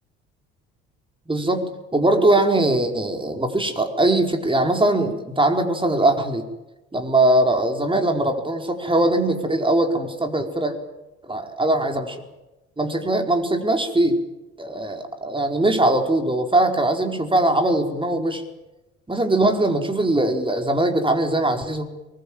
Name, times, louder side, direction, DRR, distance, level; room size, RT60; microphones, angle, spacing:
voice 1, 1.3-6.4 6.9-10.7 11.2-12.2 12.8-14.2 14.6-18.4 19.1-21.9, right 1 dB, 15° right, 5 dB, 4.8 m, -21 dB
23.0 x 21.0 x 9.0 m, 1.0 s
hypercardioid pair, 65°, 33 cm